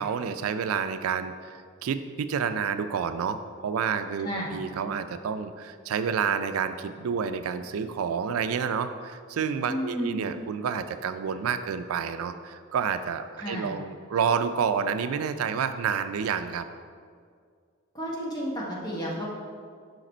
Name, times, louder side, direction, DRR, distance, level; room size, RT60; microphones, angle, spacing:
voice 1, 0.0-16.6, right 6 dB, 85° right, 10 dB, 0.3 m, -29 dB
voice 2, 9.6-10.2 13.4-13.7 17.9-19.3, equal, 20° left, -4 dB, 1.2 m, -32 dB
5.8 x 5.0 x 4.3 m, 2.1 s
head